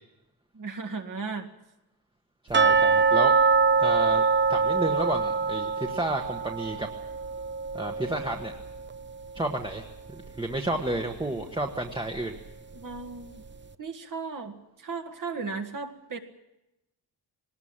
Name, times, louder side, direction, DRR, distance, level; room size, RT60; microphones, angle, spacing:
voice 1, 0.5-1.5 12.7-13.4 13.8-16.2, right 4 dB, 50° right, 6 dB, 2.0 m, -36 dB
voice 2, 2.5-3.4 3.8-4.2 4.5-6.9 7.7-8.5 9.3-12.4, right 2 dB, 10° right, 2 dB, 1.3 m, -31 dB
sound 1, 2.5-9.4 9.7-9.8 10.3-10.4 10.9-11.0, right 5 dB, 25° right, 0.7 m, -24 dB
20.0 x 19.5 x 8.9 m, 0.93 s
wide cardioid pair, 175°, 42 cm